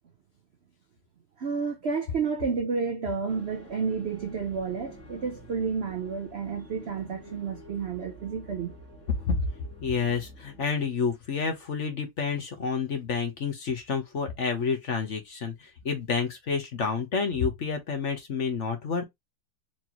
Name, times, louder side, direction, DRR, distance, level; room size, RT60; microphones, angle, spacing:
voice 1, 1.4-8.8, right 5 dB, 75° right, 0.5 m, -31 dB
sound 1, 3.3-10.7, equal, 10° left, 1.1 m, -48 dB
voice 2, 9.8-19.0, left 5 dB, 50° left, 1.1 m, -29 dB
4.4 x 3.0 x 2.9 m
omnidirectional pair, 2.0 m